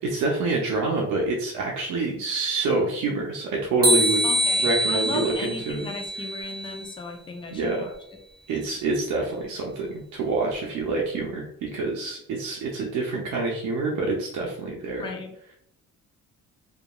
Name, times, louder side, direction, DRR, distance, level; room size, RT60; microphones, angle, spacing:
voice 1, 0.0-4.2 4.6-5.9 7.5-7.8 8.5-15.1, right 3 dB, 75° right, -2 dB, 0.6 m, -27 dB
sound 1, 3.8-6.9, right 1 dB, 30° right, 0.6 m, -25 dB
voice 2, 4.2-7.9 15.0-15.3, left 3 dB, 15° left, 2 dB, 0.4 m, -36 dB
2.8 x 2.4 x 2.2 m, 0.71 s
cardioid pair, 90°, 30 cm